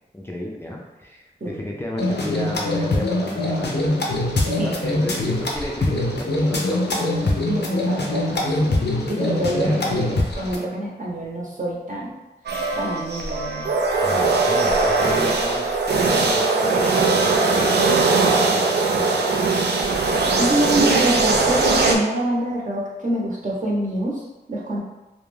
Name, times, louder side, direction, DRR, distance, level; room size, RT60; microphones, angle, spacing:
voice 1, 0.1-4.0 4.5-7.4 9.6-9.9 14.0-19.3, equal, 15° left, -3 dB, 0.4 m, -33 dB
sound 1, 2.0-10.6, left 1 dB, 75° left, 0.5 m, -23 dB
voice 2, 4.6-5.0 7.5-8.8 9.1-12.1 12.8-13.7 20.4-24.8, right 1 dB, 45° right, -5 dB, 0.8 m, -26 dB
sound 2, 12.5-22.0, right 3 dB, 75° right, 0.4 m, -20 dB
2.3 x 2.1 x 3.2 m, 1.0 s
wide cardioid pair, 60°, 18 cm